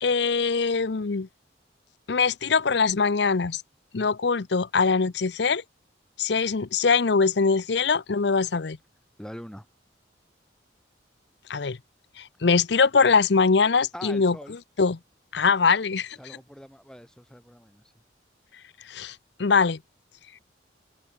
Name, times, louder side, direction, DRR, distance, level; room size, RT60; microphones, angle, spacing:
voice 1, 0.0-1.3 2.1-3.6 3.9-5.6 6.2-8.8 11.5-11.8 12.2-14.4 14.8-15.0 15.3-16.2 18.9-19.8, left 5 dB, 65° left, 0.7 m, -22 dB
voice 2, 9.2-9.7 13.9-14.6 16.2-17.8, equal, 5° left, 4.8 m, -43 dB
head